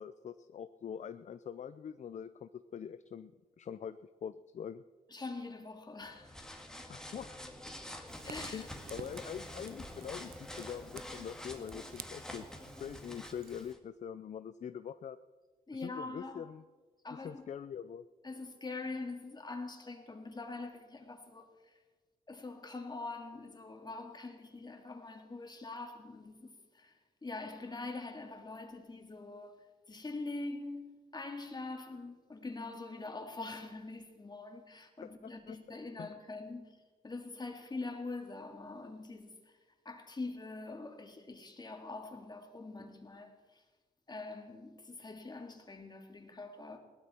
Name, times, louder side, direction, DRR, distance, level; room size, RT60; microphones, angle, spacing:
voice 1, 0.0-3.3 3.6-4.8 6.9-7.4 8.3-12.4 12.8-15.2 15.7-16.6 17.2-18.0 35.2-35.6 36.0-36.1, left 8 dB, 50° left, 0.5 m, -44 dB
voice 2, 5.1-6.4 8.2-8.7 15.7-16.5 17.0-17.5 18.2-21.8 22.3-39.6 39.8-43.6 44.1-46.8, left 3 dB, 25° left, 2.4 m, -44 dB
sound 1, 6.0-13.8, left 1 dB, 5° left, 2.0 m, -47 dB
Fire, 8.1-13.7, right 10 dB, 80° right, 0.6 m, -53 dB
17.5 x 12.5 x 4.4 m
cardioid pair, 75°, 15 cm